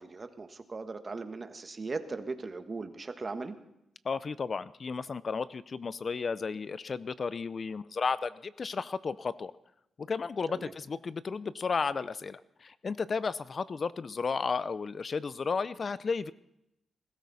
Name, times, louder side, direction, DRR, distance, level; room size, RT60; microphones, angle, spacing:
voice 1, 0.0-3.5 10.5-10.7, right 3 dB, 35° right, 8 dB, 1.3 m, -38 dB
voice 2, 4.0-9.5 10.0-16.3, left 5 dB, 45° left, 16 dB, 0.5 m, -33 dB
21.0 x 13.5 x 4.1 m, 0.84 s
cardioid pair, 80°, 0 cm